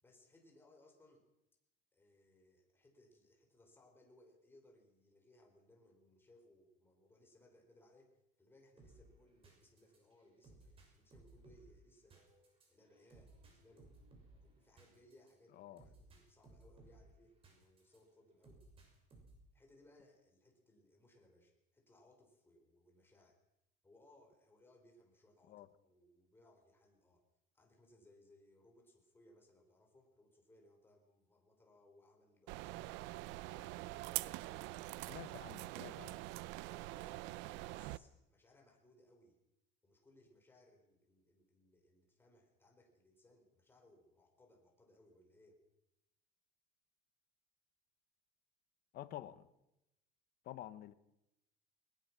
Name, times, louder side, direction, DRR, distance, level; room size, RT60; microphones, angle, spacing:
voice 1, 0.0-1.3 1.9-12.3 12.7-13.9 14.4-18.6 19.5-23.4 23.8-27.2 27.5-33.1 33.3-35.6 36.5-37.3 37.7-39.4 39.8-45.6, left 1 dB, 10° left, 4.8 m, -67 dB
sound 1, 8.8-18.0 18.4-19.5, right 2 dB, 30° right, 6.5 m, -63 dB
sound 2, 32.5-38.0, right 18 dB, 75° right, 0.7 m, -44 dB
voice 2, 35.0-36.2 48.9-49.5 50.4-50.9, left 13 dB, 50° left, 1.1 m, -49 dB
20.5 x 20.5 x 6.2 m
cardioid pair, 145°, 19 cm